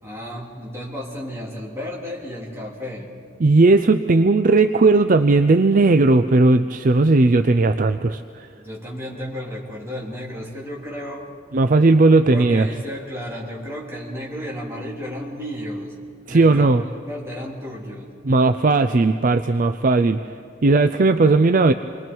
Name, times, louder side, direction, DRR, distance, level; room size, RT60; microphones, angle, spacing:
voice 1, 0.0-3.1 8.6-11.3 12.1-15.9 16.3-18.2, equal, 15° right, -4 dB, 3.4 m, -33 dB
voice 2, 3.4-8.2 11.5-12.7 16.3-16.8 18.2-20.2 20.6-21.7, right 3 dB, 45° right, 9 dB, 0.5 m, -16 dB
27.5 x 22.0 x 4.6 m, 2.5 s
head